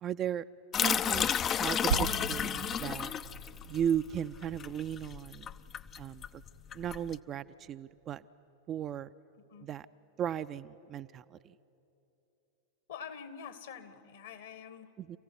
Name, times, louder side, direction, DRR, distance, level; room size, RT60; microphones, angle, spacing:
voice 1, 0.0-0.4 0.8-3.1 3.7-5.5 6.0-6.4 6.7-8.2 8.7-9.1 9.6-9.9 10.2-11.5 15.0-15.2, right 9 dB, 30° right, 12 dB, 0.5 m, -36 dB
sound 1, 0.7-7.1, left 8 dB, 25° left, 0.4 m, -32 dB
sound 2, 1.9-7.6, right 7 dB, 70° right, 0.7 m, -40 dB
voice 2, 9.4-9.7 12.9-14.9, left 7 dB, 60° left, 12 dB, 1.5 m, -46 dB
27.0 x 15.5 x 9.6 m, 2.9 s
figure-of-eight pair, 90°, 0 cm